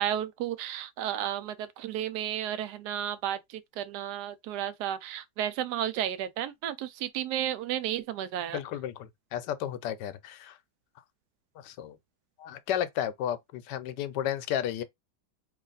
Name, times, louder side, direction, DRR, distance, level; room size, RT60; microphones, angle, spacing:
voice 1, 0.0-8.6, right 11 dB, 80° right, 1.1 m, -33 dB
voice 2, 8.5-10.6 11.6-12.0 12.4-14.8, left 10 dB, 90° left, 1.2 m, -33 dB
3.2 x 2.4 x 3.8 m
omnidirectional pair, 1.8 m